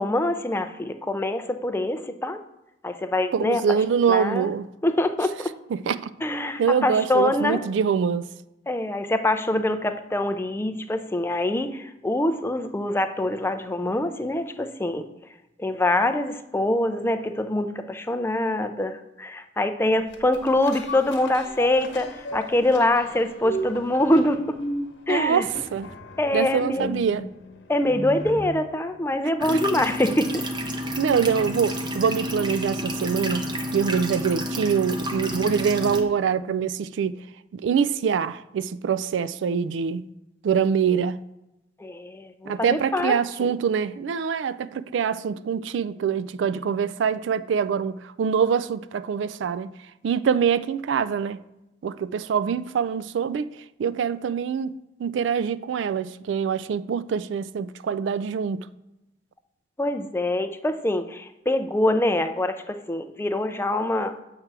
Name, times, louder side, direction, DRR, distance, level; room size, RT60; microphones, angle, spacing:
voice 1, 0.0-2.4 2.8-3.6 4.1-4.5 4.8-5.5 6.2-7.6 8.7-15.0 15.6-24.6 25.1-25.5 26.2-26.9 27.7-30.5 41.8-43.1 59.8-64.1, left 1 dB, 15° left, 0.4 m, -24 dB
voice 2, 3.3-4.7 5.7-6.1 6.6-8.3 25.1-25.9 26.3-27.3 29.5-29.6 31.0-33.5 33.7-37.2 37.5-40.1 40.4-41.2 42.5-49.7 50.0-51.4 51.8-53.5 53.8-54.7 55.0-58.7, right 6 dB, 85° right, 0.3 m, -24 dB
sound 1, 20.1-28.7 29.1-29.2, equal, 75° left, 1.1 m, -36 dB
sound 2, 29.4-36.0, equal, 25° right, 0.7 m, -30 dB
7.4 x 3.3 x 5.9 m
head